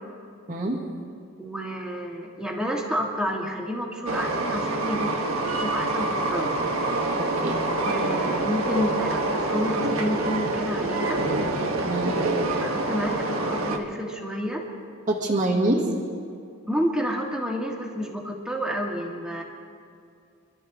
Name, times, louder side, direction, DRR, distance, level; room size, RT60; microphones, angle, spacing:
voice 1, 0.5-0.8 7.2-7.6 11.8-12.2 15.1-15.8, right 1 dB, 35° right, -3 dB, 1.7 m, -25 dB
voice 2, 1.4-6.5 7.9-11.2 12.6-14.6 16.7-19.4, equal, 5° right, -2 dB, 2.0 m, -30 dB
Train, 4.1-13.8, right 2 dB, 70° right, 1.5 m, -26 dB
25.5 x 13.0 x 3.7 m, 2.4 s
head